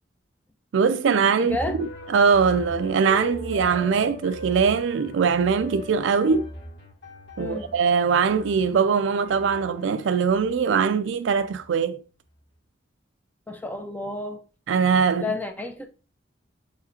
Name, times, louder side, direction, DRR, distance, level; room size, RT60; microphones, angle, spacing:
voice 1, 0.7-1.6 2.1-6.5 7.4-12.0 14.7-15.3, right 6 dB, 80° right, 0.4 m, -21 dB
voice 2, 1.4-1.8 7.4-7.7 13.5-14.4 15.2-15.9, left 2 dB, 10° left, 0.9 m, -31 dB
sound 1, 1.5-11.7, equal, 70° left, 2.6 m, -39 dB
7.0 x 4.8 x 2.8 m
head